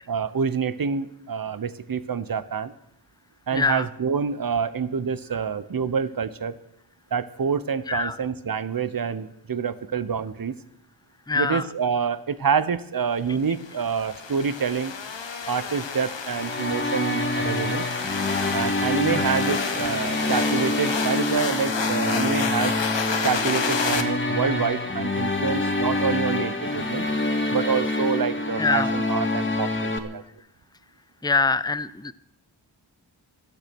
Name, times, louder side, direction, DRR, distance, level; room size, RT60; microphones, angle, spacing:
voice 1, 0.1-2.7 3.5-6.6 7.1-10.5 11.3-14.9 15.5-17.9 18.5-22.7 23.2-27.1 27.5-30.2, right 6 dB, 45° right, 15 dB, 1.1 m, -27 dB
voice 2, 3.5-3.9 7.9-8.2 11.3-11.6 19.0-19.3 28.6-28.9 31.2-32.1, left 4 dB, 10° left, 15 dB, 0.7 m, -24 dB
sound 1, 13.6-24.0, left 5 dB, 65° left, 1.7 m, -30 dB
sound 2, 16.3-30.0, left 2 dB, 25° left, 2.2 m, -26 dB
16.5 x 12.5 x 6.2 m, 0.79 s
cardioid pair, 50°, 48 cm